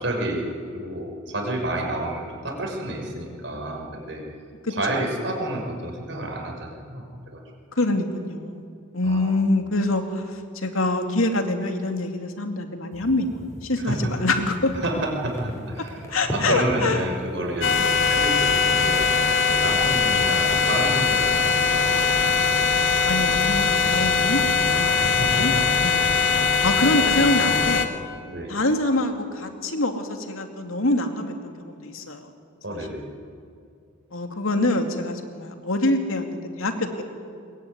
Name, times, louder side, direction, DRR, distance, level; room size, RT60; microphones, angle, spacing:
voice 1, 0.0-4.2 4.7-7.4 9.0-9.3 13.8-14.1 14.8-16.0 16.3-22.4 24.8-25.6 28.3-28.5 32.6-33.0, right 1 dB, 60° right, 2 dB, 5.6 m, -30 dB
voice 2, 7.7-8.7 8.9-14.7 16.1-17.0 17.7-17.9 23.0-25.5 25.8-26.0 26.6-27.9 28.5-32.3 34.1-37.0, left 2 dB, 90° left, 5 dB, 2.6 m, -25 dB
sound 1, 12.9-21.3, equal, 15° left, 4.7 m, -38 dB
sound 2, 17.6-27.9, left 5 dB, 65° left, 1.7 m, -21 dB
22.5 x 22.0 x 9.8 m, 2.4 s
head